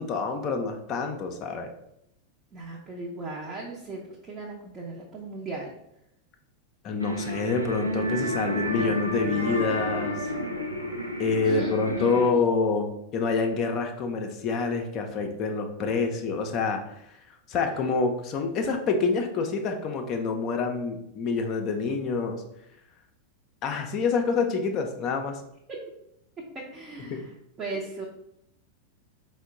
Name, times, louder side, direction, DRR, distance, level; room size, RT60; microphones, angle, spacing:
voice 1, 0.0-1.7 6.8-10.3 11.2-12.9 13.1-16.8 17.5-22.4 23.6-25.4 27.1-27.2, left 4 dB, 35° left, 4 dB, 0.5 m, -27 dB
voice 2, 2.5-5.7 11.4-12.6 17.7-17.8 25.7-25.8 26.4-28.1, right 2 dB, 25° right, -4 dB, 0.6 m, -37 dB
sound 1, 7.0-12.3, equal, 90° right, 0.5 m, -30 dB
4.3 x 2.1 x 3.7 m, 0.79 s
figure-of-eight pair, 90°, 0 cm